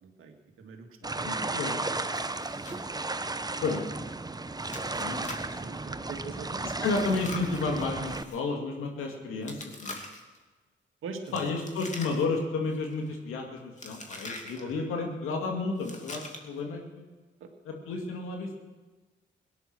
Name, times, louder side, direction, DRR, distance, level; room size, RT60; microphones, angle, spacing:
voice 1, 0.0-1.6 4.6-6.9 11.0-11.5 14.6-14.9 17.4-17.5, right 4 dB, 75° right, 3 dB, 2.1 m, -44 dB
voice 2, 1.0-1.9 2.7-2.8 3.6-3.9 5.0-5.2 6.8-10.0 11.3-17.0 17.7-18.5, left 3 dB, 85° left, 2 dB, 2.5 m, -32 dB
sound 1, 1.0-8.2, right 2 dB, 20° right, 0.9 m, -34 dB
Chewing mastication, 2.1-2.8 3.1-3.2 3.7-3.8 4.7-5.6 6.8-8.4 9.4-10.4 11.2-12.4 12.7-13.1 13.8-14.6 15.8-16.6, left 2 dB, 35° left, 2.7 m, -43 dB
18.0 x 10.5 x 6.2 m, 1.3 s
supercardioid pair, 50°, 21 cm